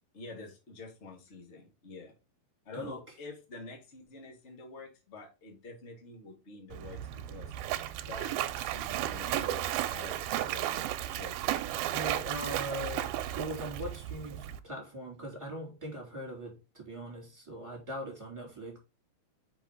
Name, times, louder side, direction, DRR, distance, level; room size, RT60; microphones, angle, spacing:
voice 1, 0.1-2.1 2.6-7.5 8.1-11.4, left 3 dB, 40° left, 1.0 m, -47 dB
Splash splatter, 6.7-14.6, right 12 dB, 90° right, 2.5 m, -34 dB
voice 2, 11.9-18.8, equal, 10° right, 2.3 m, -40 dB
6.0 x 5.6 x 3.7 m
omnidirectional pair, 4.3 m